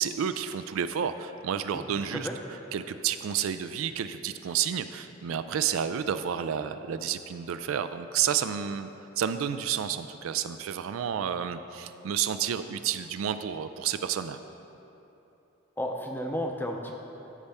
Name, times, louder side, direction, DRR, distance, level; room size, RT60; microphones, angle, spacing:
voice 1, 0.0-2.3 2.7-8.9 9.2-14.4, right 8 dB, 85° right, 11 dB, 0.3 m, -30 dB
voice 2, 1.7-2.4 15.8-16.9, equal, 10° left, 2 dB, 0.5 m, -33 dB
13.0 x 5.5 x 3.5 m, 3.0 s
head